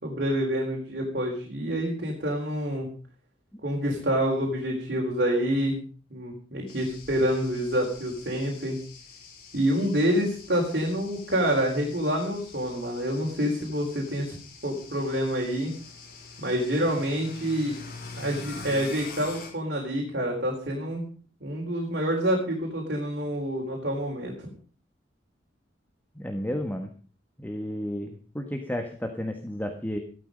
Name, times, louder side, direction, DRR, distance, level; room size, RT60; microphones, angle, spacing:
voice 1, 0.0-2.9 3.6-5.8 6.1-8.8 9.5-14.3 14.6-15.7 16.4-17.7 18.2-21.0 21.4-24.5, equal, 55° right, -1 dB, 4.3 m, -27 dB
sound 1, 6.7-19.5, left 4 dB, 50° left, 5.7 m, -45 dB
voice 2, 26.1-26.9 27.4-30.0, equal, 10° left, 5 dB, 1.5 m, -32 dB
16.0 x 13.5 x 5.3 m, 0.41 s
head